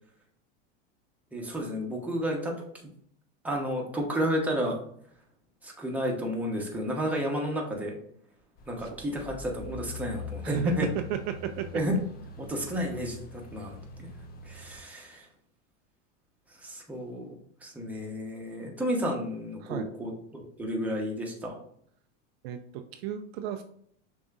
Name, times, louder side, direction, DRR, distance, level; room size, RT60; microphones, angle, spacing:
voice 1, 1.3-2.5 3.4-4.8 5.6-8.0 8.7-10.9 11.7-11.9 12.4-13.8 14.4-15.3 16.5-17.3 17.6-21.6, equal, 5° right, -1 dB, 0.9 m, -32 dB
sound 1, 8.6-14.8, left 4 dB, 25° left, 0.5 m, -43 dB
voice 2, 10.4-11.8 19.6-19.9 22.4-23.6, right 10 dB, 55° right, 7 dB, 0.5 m, -34 dB
6.1 x 2.9 x 2.4 m, 0.65 s
supercardioid pair, 120°, 36 cm